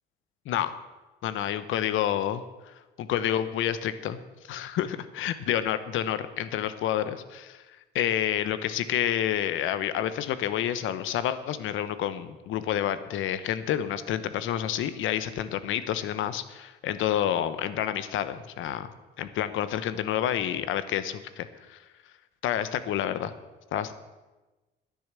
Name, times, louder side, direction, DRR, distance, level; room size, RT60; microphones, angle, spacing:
voice 1, 1.2-2.4 3.0-4.2 4.5-7.6 7.9-18.9 19.2-21.8 22.4-23.3 23.7-23.9, left 11 dB, 85° left, 13 dB, 0.9 m, -29 dB
10.5 x 10.5 x 7.5 m, 1.1 s
cardioid pair, 90°, 20 cm